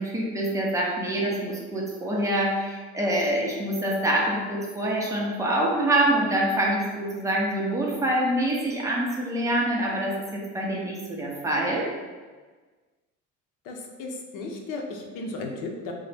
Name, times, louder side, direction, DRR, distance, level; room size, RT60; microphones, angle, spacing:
voice 1, 0.0-11.9, right 1 dB, 10° right, -4 dB, 0.6 m, -25 dB
voice 2, 13.6-15.9, left 3 dB, 90° left, 2 dB, 0.7 m, -35 dB
3.7 x 2.1 x 3.3 m, 1.4 s
cardioid pair, 145°, 30 cm